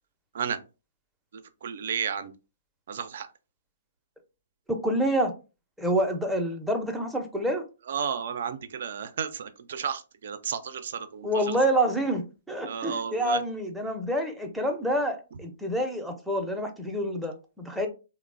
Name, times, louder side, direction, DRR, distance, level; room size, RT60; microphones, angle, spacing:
voice 1, 1.3-2.3 2.9-3.3 7.9-11.6 12.7-13.4, right 7 dB, 60° right, 0.4 m, -33 dB
voice 2, 4.7-5.3 5.8-7.6 11.2-17.9, right 1 dB, ahead, 0.5 m, -27 dB
3.0 x 2.0 x 2.4 m
figure-of-eight pair, 125°, 0 cm